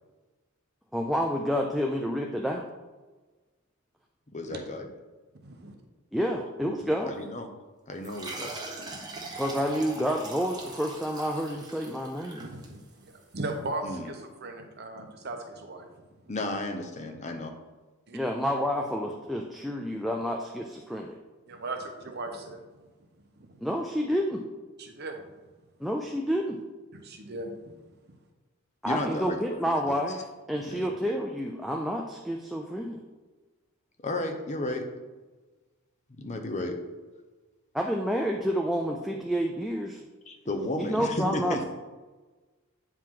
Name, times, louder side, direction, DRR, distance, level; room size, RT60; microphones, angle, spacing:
voice 1, 0.9-2.7 6.1-7.1 9.4-12.4 18.1-21.2 23.6-24.4 25.8-26.6 28.8-30.2 30.5-33.0 37.7-40.1 40.8-41.6, equal, ahead, 1 dB, 0.4 m, -29 dB
voice 2, 4.3-4.9 7.1-7.5 7.9-8.6 13.8-14.1 16.3-17.5 28.8-29.9 30.6-30.9 34.0-34.9 36.2-36.8 40.3-41.6, left 1 dB, 30° left, 5 dB, 0.8 m, -33 dB
voice 3, 5.4-5.7 12.4-15.9 18.1-18.2 21.5-22.6 23.4-23.6 24.8-25.2 26.9-27.7, right 2 dB, 45° right, 5 dB, 0.9 m, -38 dB
sound 1, 8.0-13.2, right 2 dB, 20° right, 1.1 m, -41 dB
8.7 x 4.7 x 3.7 m, 1.3 s
head